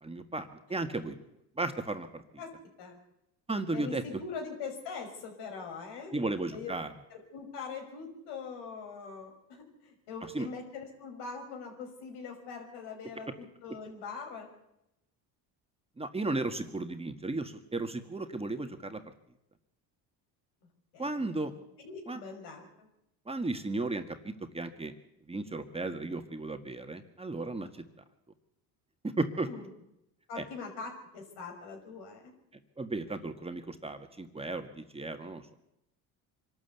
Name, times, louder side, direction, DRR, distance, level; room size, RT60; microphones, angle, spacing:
voice 1, 0.0-1.2 1.6-2.2 3.5-4.0 6.1-6.9 10.3-10.5 16.0-19.0 21.0-21.5 22.1-22.2 23.3-24.9 25.3-27.8 29.0-29.7 30.4-30.5 32.8-35.4, right 2 dB, 15° right, 6 dB, 1.7 m, -35 dB
voice 2, 3.7-6.2 6.5-6.7 7.1-14.5 20.9-21.2 21.8-22.9 29.4-29.7 30.3-32.3, left 5 dB, 85° left, 3 dB, 5.8 m, -42 dB
24.5 x 12.5 x 8.3 m, 0.86 s
cardioid pair, 100°, 41 cm